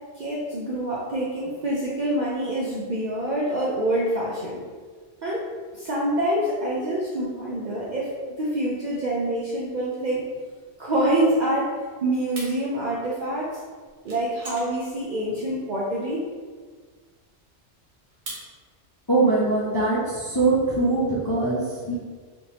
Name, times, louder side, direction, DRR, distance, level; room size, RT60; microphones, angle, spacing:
voice 1, 0.2-4.6 5.2-5.5 5.7-8.1 8.4-10.2 10.8-11.7 12.0-13.5 14.0-16.2, right 1 dB, 60° right, -6 dB, 0.5 m, -26 dB
sound 1, 12.1-19.1, right 2 dB, 85° right, 1.3 m, -43 dB
voice 2, 19.1-21.9, right 3 dB, 30° left, -8 dB, 0.4 m, -22 dB
3.3 x 2.5 x 2.9 m, 1.5 s
omnidirectional pair, 1.2 m